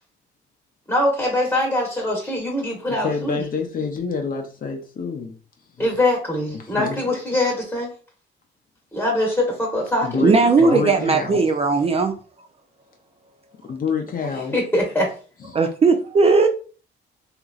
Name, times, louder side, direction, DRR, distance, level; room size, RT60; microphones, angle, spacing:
voice 1, 0.9-3.4 5.8-7.9 8.9-10.8 14.5-15.1, left 1 dB, 10° left, 1.1 m, -23 dB
voice 2, 2.9-5.3 5.8-5.9 6.5-7.0 10.0-10.3 10.6-11.4 13.6-14.6 15.4-15.6, left 5 dB, 45° left, 0.6 m, -27 dB
voice 3, 10.2-12.1 15.5-16.5, right 4 dB, 30° right, 0.4 m, -17 dB
2.9 x 2.5 x 2.3 m
cardioid pair, 90°, 20 cm